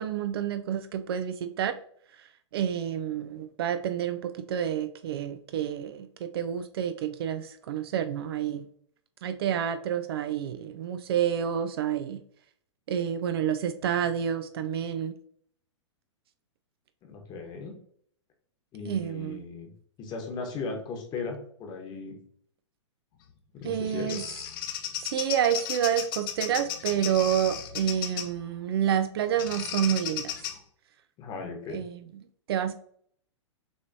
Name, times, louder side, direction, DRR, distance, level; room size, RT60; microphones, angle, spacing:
voice 1, 0.0-1.8 2.2-2.3 2.5-8.7 9.2-12.2 12.9-15.1 18.9-19.4 23.6-24.3 25.0-30.3 31.7-32.2 32.5-32.7, right 9 dB, 50° right, 10 dB, 0.4 m, -29 dB
voice 2, 17.0-17.7 18.7-19.7 20.0-22.2 23.5-24.2 31.2-31.8, left 4 dB, 25° left, 3 dB, 1.2 m, -37 dB
Bird vocalization bird call bird song, 23.6-28.4 29.4-30.6, left 10 dB, 45° left, 0.7 m, -35 dB
6.2 x 3.1 x 2.7 m, 0.62 s
figure-of-eight pair, 110°, 16 cm